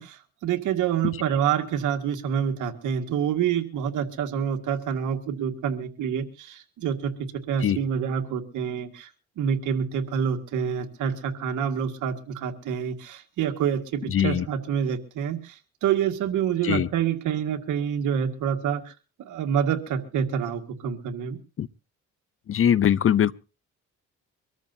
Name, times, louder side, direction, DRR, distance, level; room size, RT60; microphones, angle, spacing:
voice 1, 0.0-7.1 7.5-9.1 9.4-18.9 19.2-21.4, right 8 dB, 85° right, 1.9 m, -27 dB
voice 2, 14.1-14.5 16.6-16.9 21.6-21.7 22.5-23.3, left 9 dB, 45° left, 0.7 m, -21 dB
24.0 x 13.5 x 2.8 m
cardioid pair, 90°, 30 cm